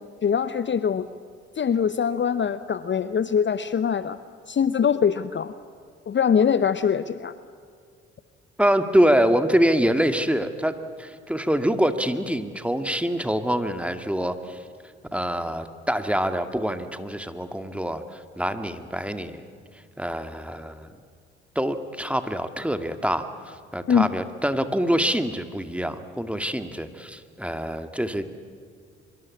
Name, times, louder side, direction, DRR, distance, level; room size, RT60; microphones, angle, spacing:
voice 1, 0.2-1.1 1.6-4.2 4.5-5.5 6.1-7.3 23.9-24.1, left 7 dB, 35° left, 14 dB, 0.9 m, -23 dB
voice 2, 8.6-14.6 15.1-19.4 20.0-20.9 21.6-28.3, equal, 5° right, 8 dB, 2.0 m, -25 dB
24.5 x 23.5 x 8.6 m, 2.2 s
hypercardioid pair, 45°, 32 cm